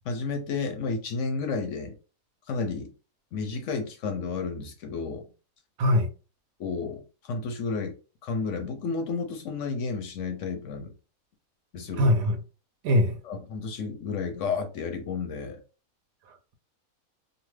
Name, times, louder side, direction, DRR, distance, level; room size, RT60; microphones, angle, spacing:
voice 1, 0.0-2.0 2.5-2.9 3.3-5.3 6.6-8.0 8.2-10.9 11.7-12.1 13.2-15.6, left 4 dB, 65° left, 0.9 m, -32 dB
voice 2, 5.8-6.1 12.0-12.4 12.8-13.2 16.3-16.5, left 1 dB, 80° right, 1.0 m, -22 dB
2.6 x 2.5 x 3.1 m
omnidirectional pair, 1.5 m